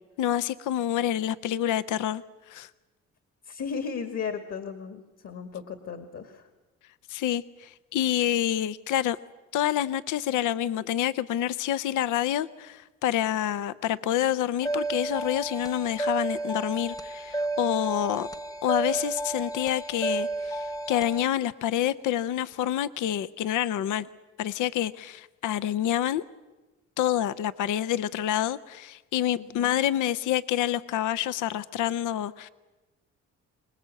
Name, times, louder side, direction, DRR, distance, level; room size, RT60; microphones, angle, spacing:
voice 1, 0.2-2.7 7.1-9.2 9.5-18.3 18.6-24.1 24.4-26.2 27.0-32.5, left 11 dB, 80° left, 15 dB, 0.7 m, -27 dB
voice 2, 3.4-6.5 29.4-29.8, left 6 dB, 55° left, 8 dB, 2.1 m, -35 dB
sound 1, 14.6-21.2, right 2 dB, 10° left, 0.9 m, -32 dB
24.5 x 20.0 x 7.7 m, 1.1 s
cardioid pair, 90°, 30 cm